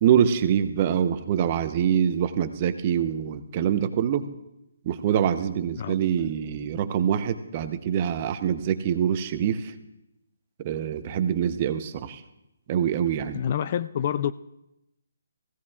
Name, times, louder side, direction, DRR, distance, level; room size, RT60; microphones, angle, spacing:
voice 1, 0.0-4.3 4.8-9.7 10.6-12.2 12.7-13.4, right 9 dB, 35° right, 10 dB, 0.8 m, -25 dB
voice 2, 5.8-6.3 13.3-14.3, left 9 dB, 40° left, 15 dB, 0.4 m, -28 dB
16.0 x 16.0 x 2.4 m, 0.89 s
figure-of-eight pair, 145°, 0 cm